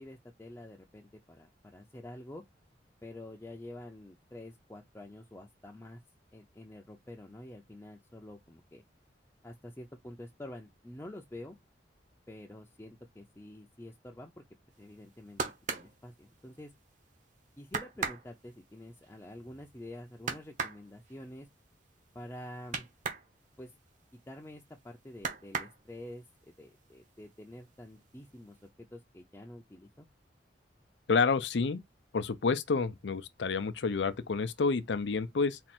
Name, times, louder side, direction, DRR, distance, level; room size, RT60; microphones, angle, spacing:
voice 1, 0.0-2.4 3.0-6.0 6.3-8.8 9.4-11.6 12.3-14.4 14.8-15.4 15.7-16.7 17.6-21.5 22.1-22.9 23.6-23.7 24.3-30.1, left 1 dB, 15° left, 0.6 m, -48 dB
sound 1, 14.9-16.9 17.3-17.4 17.7-23.3 23.6-24.7 25.1-26.2 26.7-27.3 27.5-28.3 28.6-28.7, right 4 dB, 45° right, 1.0 m, -39 dB
voice 2, 31.1-31.8 32.1-35.6, left 4 dB, 75° left, 0.5 m, -29 dB
4.3 x 2.5 x 4.3 m
head